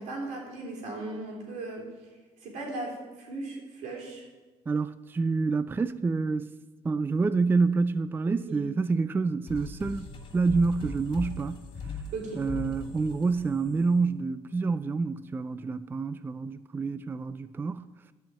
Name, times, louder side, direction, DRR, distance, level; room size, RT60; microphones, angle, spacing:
voice 1, 0.0-1.9 2.4-4.2 8.5-8.6 12.1-12.4, right 2 dB, 90° right, 3.5 m, -37 dB
voice 2, 4.7-6.5 6.8-11.6 12.4-17.9, right 4 dB, 15° right, 0.3 m, -27 dB
sound 1, 9.5-14.8, left 3 dB, 50° left, 2.8 m, -40 dB
11.5 x 5.6 x 8.7 m
cardioid pair, 115°, 12 cm